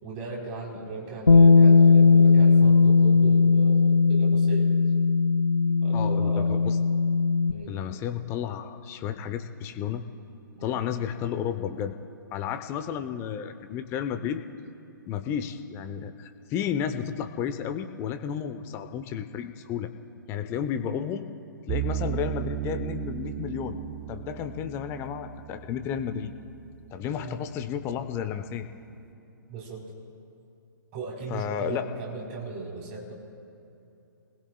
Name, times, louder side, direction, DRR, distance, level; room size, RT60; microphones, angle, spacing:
voice 1, 0.0-4.8 5.6-6.6 7.5-7.8 10.5-10.8 27.2-27.4 29.5-29.9 30.9-33.1, right 3 dB, 35° right, -2 dB, 3.9 m, -37 dB
Bass guitar, 1.3-7.5, left 4 dB, 90° left, 0.5 m, -18 dB
voice 2, 5.9-6.8 7.7-10.0 10.6-11.9 12.3-14.4 15.1-19.9 20.3-21.3 21.7-23.8 24.1-26.3 26.9-28.7 31.3-31.9, left 8 dB, 20° left, 8 dB, 0.8 m, -32 dB
sound 1, 21.7-26.8, right 14 dB, 15° right, 0.4 m, -35 dB
28.5 x 20.0 x 2.3 m, 2.7 s
figure-of-eight pair, 125°, 11 cm